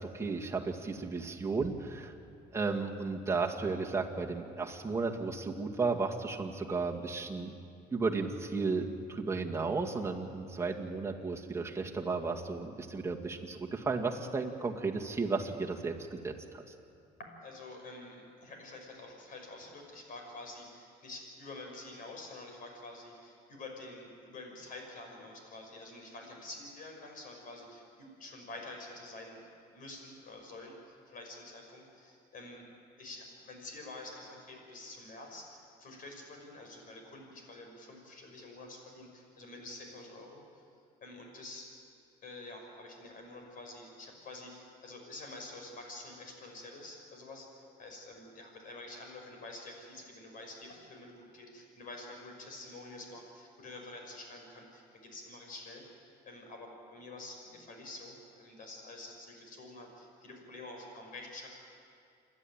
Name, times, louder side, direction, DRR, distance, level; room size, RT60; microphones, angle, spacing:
voice 1, 0.0-2.1 2.5-7.6 7.9-16.6, right 4 dB, 15° right, 0 dB, 2.1 m, -34 dB
voice 2, 17.2-29.5 29.7-32.7 33.0-40.6 41.0-41.7 42.2-61.5, left 2 dB, 55° left, 2 dB, 5.7 m, -48 dB
28.0 x 12.0 x 9.0 m, 2.4 s
cardioid pair, 110°, 17 cm